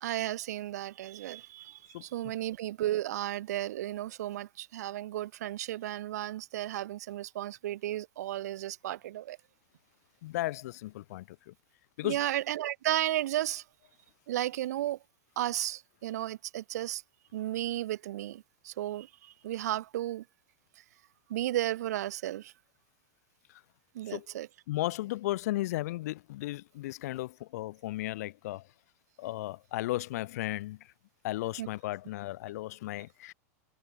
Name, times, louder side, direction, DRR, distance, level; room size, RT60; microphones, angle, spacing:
voice 1, 0.0-9.4 12.0-13.6 14.3-15.0 15.4-17.0 17.3-20.2 21.3-22.5 23.9-24.5 31.6-31.7, right 14 dB, 90° right, 0.8 m, -34 dB
voice 2, 10.2-11.5 12.0-12.2 24.1-24.3 24.7-28.6 29.2-30.8 31.2-33.3, left 17 dB, 75° left, 0.4 m, -35 dB
supercardioid pair, 145°, 9 cm